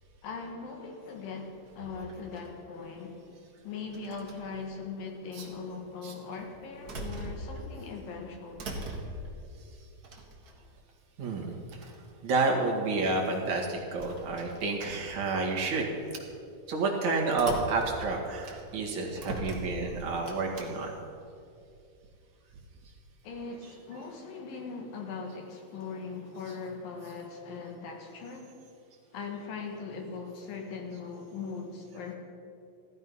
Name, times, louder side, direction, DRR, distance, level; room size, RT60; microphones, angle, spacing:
voice 1, 0.2-3.2 3.6-8.7 23.2-28.5 29.1-32.1, left 4 dB, 85° left, 2 dB, 3.4 m, -40 dB
sound 1, 1.6-2.6 3.9-4.6 5.4-5.5 6.4-7.9 8.2-9.4 10.0-10.8 11.4-11.5 11.7-12.1 13.7-15.2 15.8-16.0 17.3-18.8 19.2-20.7, right 1 dB, 40° right, 1.4 m, -41 dB
voice 2, 11.2-11.5 11.8-11.9 12.2-15.9 16.7-20.9, right 3 dB, 60° right, -1 dB, 3.0 m, -30 dB
15.5 x 13.0 x 5.5 m, 2.5 s
omnidirectional pair, 3.9 m